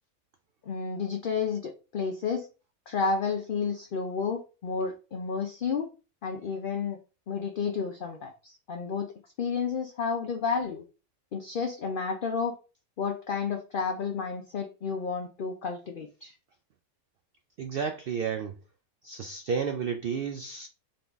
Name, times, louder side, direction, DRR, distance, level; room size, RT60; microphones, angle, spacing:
voice 1, 0.6-2.5 2.9-5.9 6.2-7.0 7.3-9.1 9.4-10.8 11.3-12.5 13.0-16.3, left 5 dB, 55° left, 0.6 m, -31 dB
voice 2, 17.6-18.6 19.0-20.7, right 6 dB, 85° right, 0.5 m, -31 dB
3.9 x 3.8 x 3.5 m
omnidirectional pair, 1.5 m